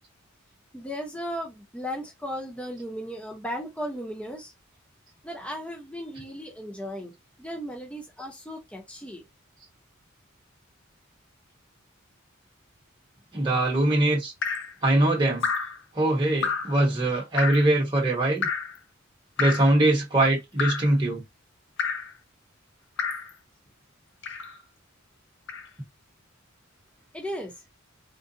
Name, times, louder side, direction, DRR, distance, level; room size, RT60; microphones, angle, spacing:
voice 1, 0.7-4.5 5.2-7.1 7.4-9.3 27.1-27.5, equal, 5° left, 0.9 m, -36 dB
voice 2, 13.3-14.3 14.8-15.5 15.9-18.5 19.4-21.2, right 1 dB, 20° right, 1.2 m, -22 dB
Drip, 14.4-14.7 15.4-15.8 16.4-16.8 17.4-17.7 18.4-18.8 19.4-19.8 20.6-20.9 21.8-22.1 23.0-23.3 24.2-24.6 25.5-25.7, left 5 dB, 60° left, 0.6 m, -29 dB
3.8 x 2.4 x 2.7 m
head